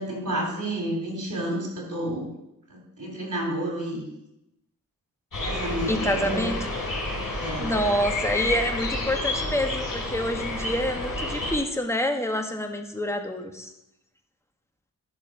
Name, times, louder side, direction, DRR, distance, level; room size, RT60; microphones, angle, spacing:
voice 1, 0.0-2.3 2.7-4.1 5.4-6.5 7.4-7.7, right 1 dB, 55° right, 0 dB, 3.3 m, -30 dB
Forest Wind, 5.3-11.6, left 2 dB, 65° left, 3.5 m, -29 dB
voice 2, 5.9-6.6 7.6-13.7, equal, 10° left, 4 dB, 1.4 m, -27 dB
10.5 x 6.4 x 4.9 m, 0.87 s
cardioid pair, 50°, 36 cm